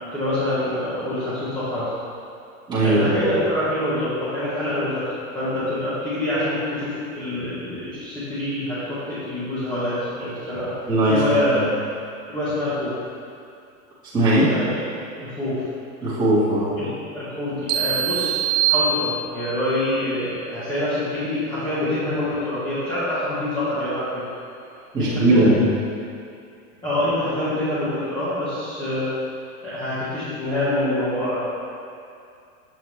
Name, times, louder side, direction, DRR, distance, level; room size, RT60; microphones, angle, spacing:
voice 1, 0.1-1.9 2.8-5.0 5.3-10.7 11.1-11.6 12.3-12.9 14.5-14.8 15.2-15.6 16.8-24.2 25.0-25.5 26.8-29.1 29.6-31.5, left 1 dB, 10° left, -14 dB, 1.5 m, -26 dB
voice 2, 2.7-3.2 10.9-11.6 14.1-14.5 16.0-16.8 24.9-25.6, right 1 dB, 10° right, -12 dB, 1.8 m, -19 dB
sound 1, 17.7-19.6, right 7 dB, 30° right, 0.4 m, -23 dB
7.5 x 7.0 x 3.3 m, 2.4 s
supercardioid pair, 150°, 42 cm